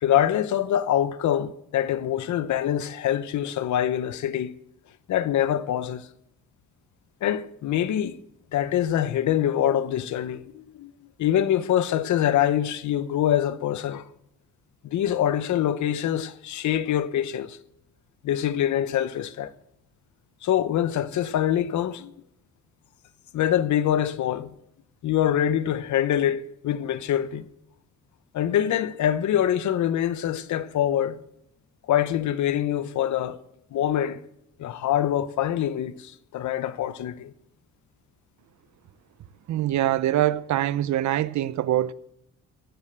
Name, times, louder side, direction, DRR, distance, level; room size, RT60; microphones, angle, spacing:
voice 1, 0.0-4.5 5.1-6.1 7.2-8.2 8.5-10.9 11.2-14.0 14.8-17.6 18.2-19.5 20.4-22.1 23.3-24.5 25.0-27.4 28.3-31.2 31.9-33.4 33.7-34.2 34.6-37.3, left 11 dB, 70° left, 1.0 m, -24 dB
voice 2, 39.5-41.9, right 13 dB, 70° right, 0.7 m, -24 dB
16.0 x 7.4 x 7.9 m
cardioid pair, 90°, 30 cm